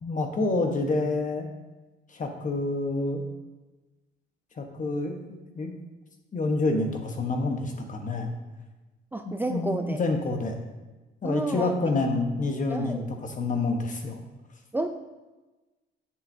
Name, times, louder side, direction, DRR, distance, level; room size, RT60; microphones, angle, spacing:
voice 1, 0.0-1.5 2.1-3.2 4.6-5.2 5.5-5.8 6.3-8.3 9.5-10.6 11.2-14.2, left 2 dB, 40° left, 4 dB, 1.2 m, -28 dB
voice 2, 9.1-10.0 11.2-11.7 12.7-13.1 14.7-14.9, right 2 dB, 10° right, 5 dB, 0.4 m, -30 dB
7.7 x 7.0 x 2.7 m, 1.2 s
cardioid pair, 90°, 20 cm